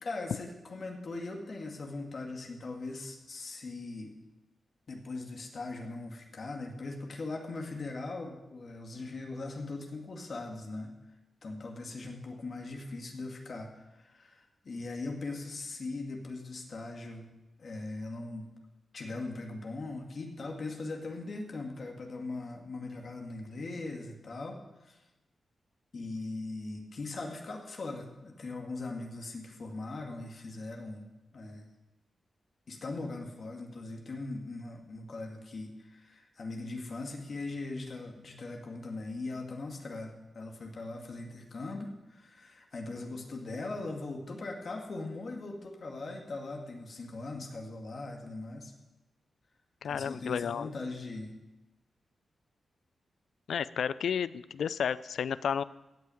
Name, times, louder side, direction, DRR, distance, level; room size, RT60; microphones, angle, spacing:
voice 1, 0.0-4.1 4.9-10.9 11.4-17.3 17.6-18.5 18.9-24.6 24.9-25.0 25.9-31.1 31.3-31.7 32.7-48.7 49.9-51.3, left 3 dB, 55° left, 2 dB, 2.0 m, -40 dB
voice 2, 49.8-50.7 53.5-55.6, left 7 dB, 85° left, 17 dB, 0.4 m, -32 dB
16.0 x 5.8 x 9.1 m, 1.0 s
cardioid pair, 90°, 0 cm